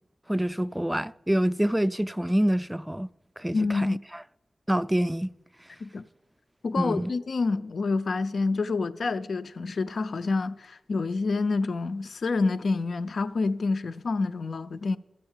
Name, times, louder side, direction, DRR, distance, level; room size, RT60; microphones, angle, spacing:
voice 1, 0.3-4.2 4.7-5.3 6.8-7.1, equal, 10° right, 0.3 m, -27 dB
voice 2, 3.5-4.0 5.8-6.0 6.6-15.0, left 3 dB, 65° left, 0.4 m, -28 dB
12.0 x 7.9 x 7.2 m
cardioid pair, 60°, 0 cm